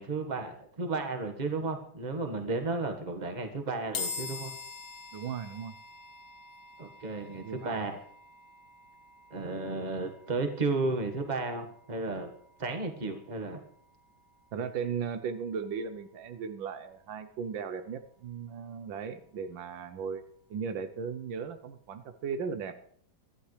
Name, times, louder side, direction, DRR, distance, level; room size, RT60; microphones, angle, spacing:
voice 1, 0.0-4.5 6.8-8.0 9.3-12.3 12.6-13.6, right 3 dB, 25° right, 5 dB, 1.5 m, -33 dB
sound 1, 4.0-17.3, left 5 dB, 85° left, 2.2 m, -46 dB
voice 2, 5.1-5.7 7.4-7.9 14.5-20.2 20.5-22.8, right 6 dB, 75° right, 9 dB, 1.6 m, -37 dB
24.5 x 11.5 x 3.3 m, 0.63 s
omnidirectional pair, 2.1 m